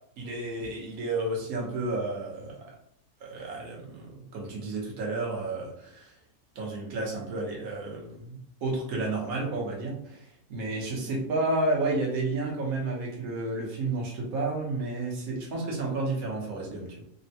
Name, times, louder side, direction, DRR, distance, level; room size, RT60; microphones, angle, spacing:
voice 1, 0.2-2.8 3.2-6.1 6.5-17.0, right 2 dB, 75° right, -2 dB, 1.3 m, -31 dB
3.5 x 2.1 x 2.7 m, 0.69 s
omnidirectional pair, 1.6 m